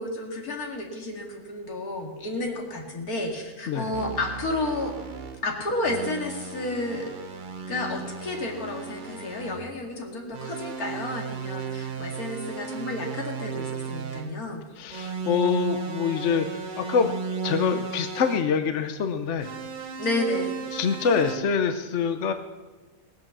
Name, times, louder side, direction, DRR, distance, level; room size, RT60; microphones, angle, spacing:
voice 1, 0.0-4.9 5.4-7.1 7.7-14.6 20.0-20.7, left 2 dB, 80° left, 1 dB, 2.8 m, -31 dB
sound 1, 3.9-5.4 5.8-9.6 10.3-14.4 14.9-18.5 19.4-21.4, right 5 dB, 40° right, 1.0 m, -35 dB
voice 2, 14.8-17.1 17.4-19.5 20.7-22.3, left 6 dB, 60° left, 8 dB, 1.0 m, -25 dB
18.5 x 7.8 x 7.2 m, 1.3 s
omnidirectional pair, 1.5 m